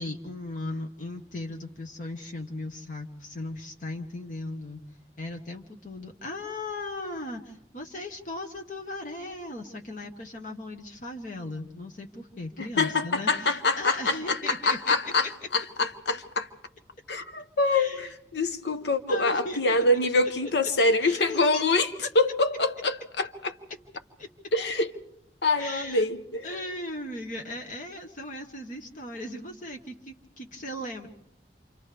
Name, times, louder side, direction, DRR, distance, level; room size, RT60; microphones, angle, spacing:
voice 1, 0.0-4.8 5.2-14.9 15.2-15.3 17.7-18.1 19.1-19.8 20.1-20.5 21.0-22.1 24.2-24.3 25.6-26.1 26.4-31.1, left 2 dB, 45° left, 1.2 m, -37 dB
voice 2, 12.6-16.5 17.1-21.9 22.1-23.5 24.5-24.9 25.4-26.5, left 2 dB, 75° left, 1.0 m, -25 dB
28.5 x 27.0 x 3.4 m
head